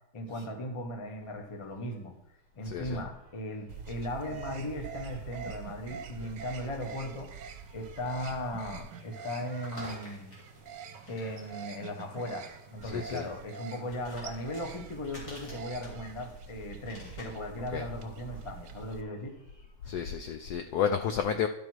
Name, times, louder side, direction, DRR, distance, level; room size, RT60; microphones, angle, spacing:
voice 1, 0.1-2.1 2.6-7.3 7.7-10.3 11.1-19.3, left 1 dB, 25° left, 4 dB, 0.6 m, -37 dB
sound 1, 1.2-20.2, left 1 dB, 45° left, 3.5 m, -55 dB
voice 2, 2.7-3.0 12.9-13.2 17.7-17.8 19.9-21.5, left 7 dB, 90° left, 7 dB, 0.8 m, -31 dB
sound 2, 3.7-19.0, right 6 dB, 65° right, 1.3 m, -45 dB
12.0 x 5.1 x 4.6 m, 0.83 s
omnidirectional pair, 2.3 m